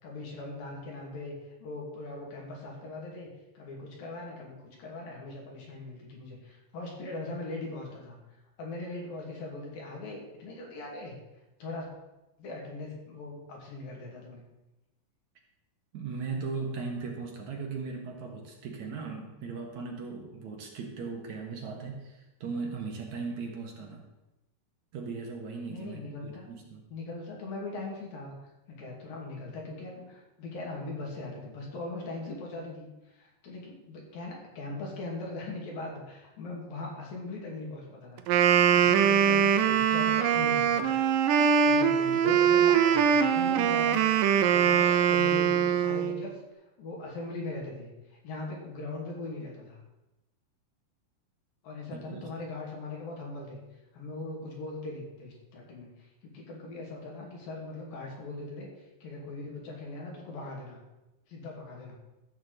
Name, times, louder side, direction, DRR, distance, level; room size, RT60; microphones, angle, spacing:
voice 1, 0.0-1.4 1.6-3.3 3.5-8.2 8.6-11.2 11.6-11.9 12.4-14.4 25.7-26.5 26.9-28.3 28.8-41.0 41.6-49.8 51.6-53.6 53.9-58.7 59.0-60.8 61.3-62.0, left 2 dB, 75° left, -1 dB, 4.4 m, -40 dB
voice 2, 15.9-24.0 24.9-26.8 51.9-52.2, right 4 dB, 60° right, 1 dB, 2.5 m, -38 dB
Wind instrument woodwind instrument, 38.2-46.2, right 8 dB, 80° right, 2.3 m, -23 dB
13.5 x 4.7 x 7.9 m, 1.0 s
omnidirectional pair, 4.1 m